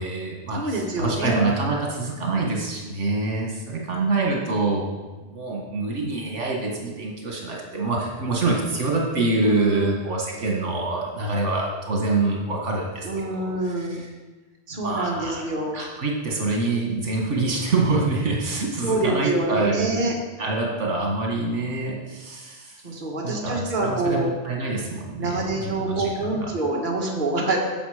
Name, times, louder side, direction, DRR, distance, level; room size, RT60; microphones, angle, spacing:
voice 1, 0.0-5.0 5.3-14.1 14.8-15.4 15.7-20.1 20.4-22.8 23.2-26.4, right 3 dB, 80° right, -2 dB, 1.9 m, -26 dB
voice 2, 0.5-1.7 9.4-9.9 13.0-14.0 14.7-15.8 18.8-20.1 22.8-24.3 25.2-27.6, right 2 dB, 45° right, -2 dB, 1.7 m, -26 dB
10.0 x 6.9 x 5.0 m, 1.2 s
omnidirectional pair, 1.2 m